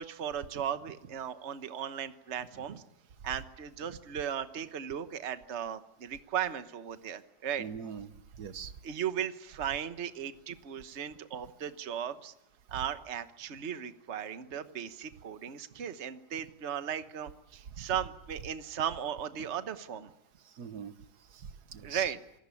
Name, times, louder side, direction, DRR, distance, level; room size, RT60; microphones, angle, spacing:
voice 1, 0.0-2.8 3.2-7.6 8.8-12.3 12.7-20.1 21.8-22.2, right 9 dB, 45° right, 10 dB, 1.3 m, -36 dB
voice 2, 7.6-8.1 8.4-8.7 17.8-17.9 20.4-20.9 21.3-22.1, right 7 dB, 65° right, 12 dB, 1.7 m, -42 dB
27.0 x 21.0 x 8.5 m, 0.82 s
omnidirectional pair, 1.9 m